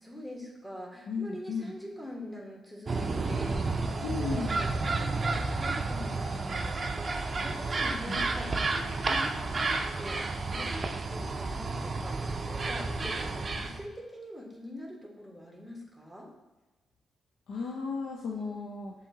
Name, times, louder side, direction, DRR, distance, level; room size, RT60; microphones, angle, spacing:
voice 1, 0.0-16.3, left 1 dB, 5° left, -2 dB, 1.5 m, -44 dB
voice 2, 1.1-1.7 4.0-4.6 8.1-8.2 17.5-18.9, left 4 dB, 80° left, -2 dB, 0.5 m, -35 dB
sound 1, 2.9-13.8, right 3 dB, 45° right, 0.4 m, -31 dB
7.0 x 2.8 x 2.7 m, 1.1 s
supercardioid pair, 55°, 0 cm